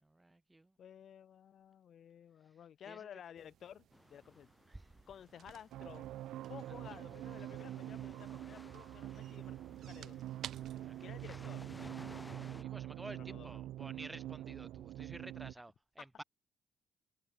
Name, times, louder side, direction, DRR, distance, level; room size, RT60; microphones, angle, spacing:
voice 1, 0.0-0.7 2.9-3.0 10.8-10.9 12.6-16.2, right 2 dB, 15° right, 0.8 m, -51 dB
voice 2, 0.8-4.5 5.1-6.1 6.5-9.6 9.9-10.2 11.0-12.1 13.1-13.6 16.0-16.1, left 9 dB, 60° left, 2.0 m, -54 dB
sound 1, 3.4-12.3, right 10 dB, 70° right, 4.9 m, -57 dB
sound 2, 3.9-12.6, left 1 dB, 10° left, 4.8 m, -57 dB
sound 3, 5.7-15.5, right 14 dB, 85° right, 0.5 m, -45 dB
cardioid pair, 90°, 0 cm